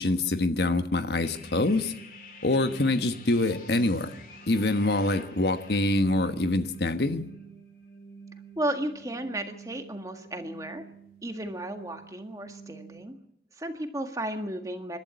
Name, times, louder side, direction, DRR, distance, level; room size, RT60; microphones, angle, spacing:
voice 1, 0.0-1.9 2.4-4.1 4.5-7.3, left 2 dB, 70° left, 9 dB, 1.3 m, -25 dB
sound 1, 1.2-13.0, right 2 dB, 50° left, 2.8 m, -47 dB
voice 2, 8.6-10.9 11.2-13.2 13.5-15.0, right 1 dB, 20° right, 6 dB, 1.8 m, -34 dB
27.0 x 12.0 x 8.3 m, 0.75 s
head